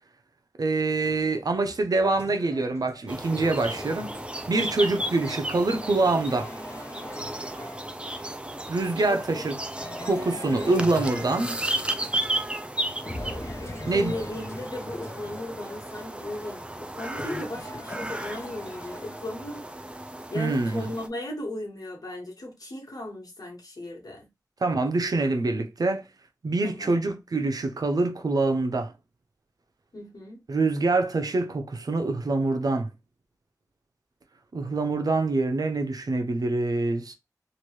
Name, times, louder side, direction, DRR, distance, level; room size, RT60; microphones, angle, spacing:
voice 1, 0.6-4.1 4.5-6.5 8.7-9.6 10.0-11.6 13.9-14.2 20.3-20.9 24.6-26.0 26.4-28.9 30.5-32.9 34.5-37.1, right 3 dB, 85° right, 0.6 m, -25 dB
sound 1, 1.0-8.4 9.8-12.6 13.0-19.5, left 1 dB, 45° left, 0.9 m, -42 dB
sound 2, 3.1-21.1, right 1 dB, 15° right, 0.4 m, -34 dB
voice 2, 9.1-9.5 13.6-19.7 20.3-24.3 26.6-27.0 29.9-30.4, left 1 dB, 75° left, 1.4 m, -37 dB
3.0 x 2.5 x 3.1 m
wide cardioid pair, 70°, 6 cm